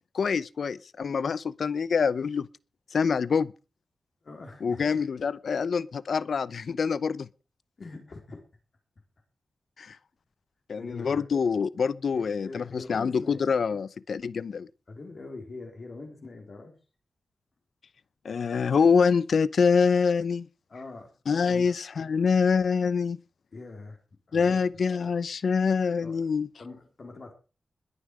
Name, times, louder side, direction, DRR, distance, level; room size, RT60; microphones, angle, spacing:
voice 1, 0.1-2.5 2.9-3.5 4.6-7.3 9.8-10.0 10.7-14.7 18.2-20.5 21.3-23.2 24.3-26.5, left 5 dB, 65° left, 0.7 m, -25 dB
voice 2, 4.2-4.8 7.8-8.4 10.7-11.4 12.1-13.5 14.9-16.8 20.7-21.1 21.5-21.7 23.5-24.0 24.3-24.7 26.0-26.2 26.6-27.3, left 3 dB, 45° left, 4.0 m, -43 dB
21.0 x 10.0 x 4.9 m
wide cardioid pair, 170°, 0 cm